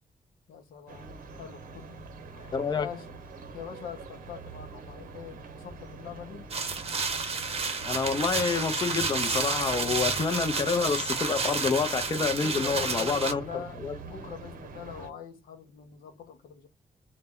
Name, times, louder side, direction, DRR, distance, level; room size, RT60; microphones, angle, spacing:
voice 1, 0.5-3.2 3.5-6.5 12.4-16.7, left 8 dB, 80° left, 0.7 m, -44 dB
sound 1, 0.9-15.1, right 4 dB, 75° right, 0.8 m, -44 dB
voice 2, 2.5-2.9 7.9-14.0, left 5 dB, 30° left, 0.4 m, -28 dB
sound 2, 6.5-13.3, right 4 dB, 45° right, 0.7 m, -30 dB
2.1 x 2.1 x 3.5 m
cardioid pair, 75°, 15 cm